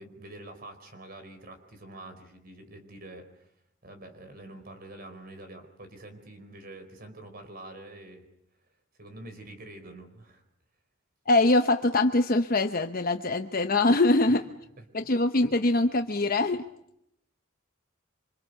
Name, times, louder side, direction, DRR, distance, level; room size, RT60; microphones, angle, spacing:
voice 1, 0.0-3.5 3.8-8.2 9.0-10.4 14.3-14.4 14.8-14.9, right 2 dB, 50° right, 8 dB, 4.6 m, -46 dB
voice 2, 11.3-14.4 14.9-16.6, left 2 dB, 45° left, 7 dB, 0.9 m, -23 dB
27.0 x 25.5 x 6.9 m, 0.78 s
head